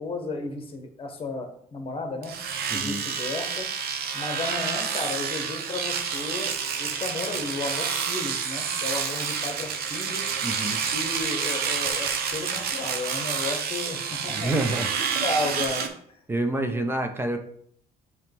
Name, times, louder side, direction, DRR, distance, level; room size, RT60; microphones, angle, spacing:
voice 1, 0.0-2.3 2.7-3.7 4.1-10.2 10.9-14.5 15.1-15.9, left 3 dB, 35° left, 4 dB, 1.4 m, -33 dB
Domestic sounds home sounds, 2.2-15.9, right 6 dB, 65° right, 0.9 m, -29 dB
voice 2, 2.7-3.0 10.4-10.8 14.3-14.9 16.3-17.4, right 2 dB, 15° right, 5 dB, 0.8 m, -27 dB
8.6 x 3.2 x 3.6 m, 0.65 s
cardioid pair, 110°, 17 cm